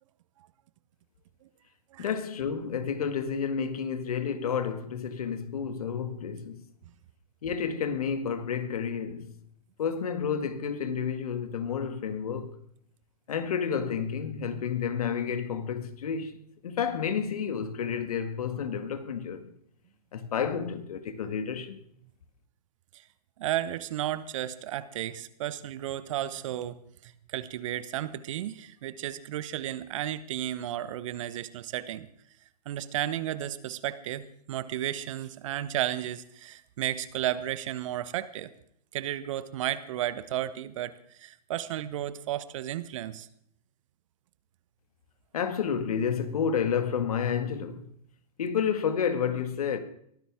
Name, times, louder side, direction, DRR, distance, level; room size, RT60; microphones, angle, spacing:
voice 1, 2.0-6.7 7.4-9.3 9.8-12.6 13.3-16.4 16.6-19.5 20.1-21.8 45.3-47.9 48.4-49.8, left 7 dB, 60° left, 1.9 m, -30 dB
voice 2, 23.4-32.1 32.6-38.5 38.9-43.3, right 12 dB, 50° right, 1.1 m, -33 dB
22.5 x 15.5 x 3.7 m
figure-of-eight pair, 110°, 21 cm